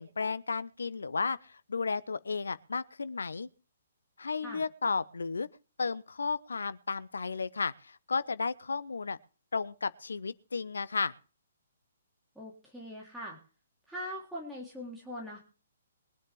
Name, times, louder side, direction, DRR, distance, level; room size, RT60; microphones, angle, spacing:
voice 1, 0.0-3.5 4.2-5.5 5.8-9.2 9.5-11.1, left 4 dB, 65° left, 1.0 m, -33 dB
voice 2, 12.3-13.4 13.9-15.4, equal, ahead, 3.3 m, -41 dB
22.5 x 10.0 x 3.5 m
figure-of-eight pair, 125°, 0 cm